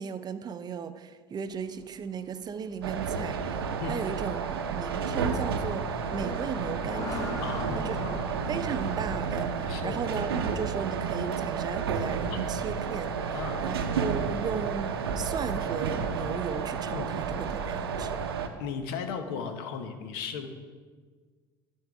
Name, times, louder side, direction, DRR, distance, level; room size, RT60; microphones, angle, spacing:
voice 1, 0.0-7.4 7.7-8.2 8.5-18.2, right 6 dB, 35° right, 11 dB, 0.6 m, -36 dB
sound 1, 1.5-18.4, left 1 dB, 30° left, 2.7 m, -46 dB
sound 2, 2.8-18.5, right 6 dB, 90° right, 0.6 m, -31 dB
voice 2, 7.4-8.3 9.7-10.0 13.3-13.7 16.9-17.1 18.6-20.5, left 6 dB, 75° left, 8 dB, 0.9 m, -36 dB
11.0 x 4.6 x 4.8 m, 1.5 s
hypercardioid pair, 75°, 12 cm